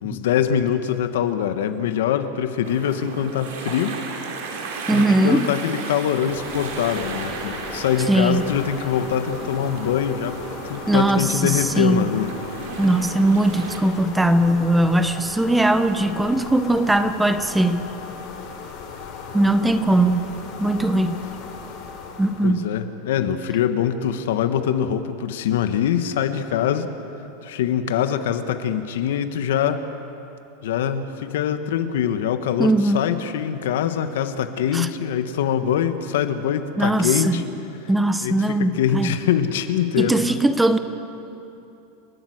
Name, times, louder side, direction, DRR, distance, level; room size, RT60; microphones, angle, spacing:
voice 1, 0.0-4.0 4.9-12.3 22.4-26.9 27.4-29.8 30.6-37.5 38.2-40.4, left 9 dB, 85° left, 9 dB, 1.4 m, -23 dB
sound 1, 2.6-13.8, right 4 dB, 70° right, 3.3 m, -34 dB
voice 2, 4.9-5.5 8.1-8.5 10.9-12.1 12.8-17.9 19.3-20.3 20.6-21.2 22.2-22.7 32.6-33.0 34.7-34.9 36.8-37.4 37.9-39.2 40.0-40.8, right 1 dB, 5° right, 10 dB, 0.6 m, -20 dB
sound 2, 6.3-22.6, left 5 dB, 40° left, 3.3 m, -37 dB
30.0 x 12.5 x 8.0 m, 2.9 s
supercardioid pair, 180°, 0 cm